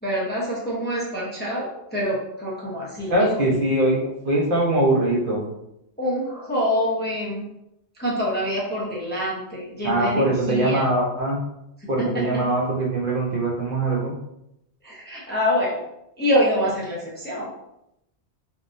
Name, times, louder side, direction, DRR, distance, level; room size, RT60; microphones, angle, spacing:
voice 1, 0.0-3.5 6.0-7.5 8.0-10.9 11.8-11.9 12.1-12.3 14.8-15.8 16.2-17.5, equal, 10° left, -6 dB, 0.6 m, -26 dB
voice 2, 3.1-5.4 9.8-11.4 11.9-14.1, right 1 dB, 55° right, -3 dB, 0.8 m, -22 dB
3.7 x 2.3 x 2.5 m, 0.83 s
omnidirectional pair, 1.1 m